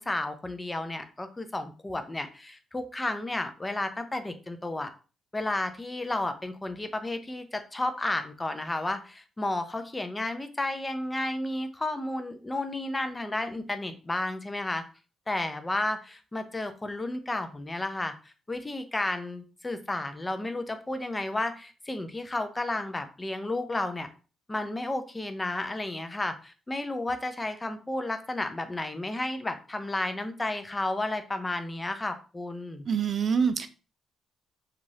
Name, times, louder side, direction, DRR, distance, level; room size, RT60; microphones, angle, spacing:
voice 1, 0.0-4.9 5.3-14.8 15.3-24.1 24.5-32.9, left 2 dB, 20° left, 0.4 m, -32 dB
voice 2, 32.9-33.7, right 6 dB, 50° right, 0.3 m, -25 dB
3.1 x 2.4 x 2.6 m
cardioid pair, 90°, 0 cm